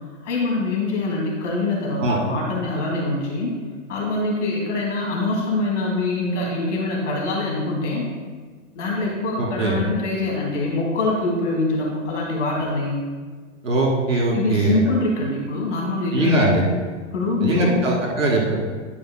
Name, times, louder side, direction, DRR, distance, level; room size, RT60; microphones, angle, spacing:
voice 1, 0.2-3.5 3.9-8.1 8.7-13.0 14.3-16.6 17.1-17.9, left 2 dB, 65° left, -2 dB, 2.1 m, -24 dB
voice 2, 9.4-9.8 13.6-14.8 16.1-16.6 17.4-18.6, right 2 dB, 80° right, -2 dB, 2.3 m, -20 dB
10.5 x 8.4 x 2.2 m, 1.5 s
figure-of-eight pair, 100°, 38 cm